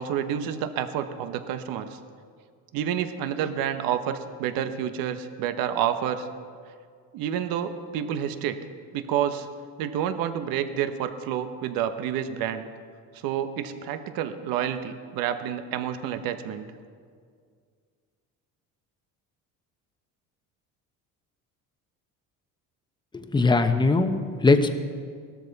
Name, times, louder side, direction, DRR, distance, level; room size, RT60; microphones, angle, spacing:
voice 1, 0.0-2.0 2.7-6.3 7.1-8.6 8.9-9.5 9.8-12.7 13.1-16.6, right 9 dB, 70° right, 9 dB, 1.1 m, -29 dB
voice 2, 23.1-24.7, left 3 dB, 15° left, 7 dB, 1.0 m, -21 dB
18.0 x 13.5 x 4.1 m, 2.1 s
cardioid pair, 105°, 35 cm